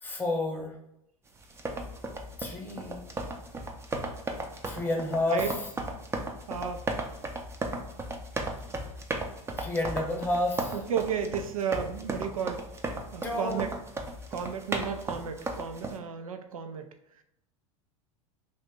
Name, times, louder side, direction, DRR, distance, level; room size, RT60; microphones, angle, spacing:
voice 1, 0.0-0.8 2.4-3.0 4.6-5.4 9.6-10.8 13.2-13.6, left 2 dB, 10° left, 1 dB, 0.9 m, -30 dB
sound 1, 1.4-16.0, right 2 dB, 15° right, 0.5 m, -36 dB
voice 2, 6.5-6.9 10.7-12.6 13.1-13.7 14.3-16.9, right 7 dB, 85° right, 7 dB, 0.4 m, -33 dB
2.8 x 2.6 x 3.6 m, 0.82 s
hypercardioid pair, 90°, 18 cm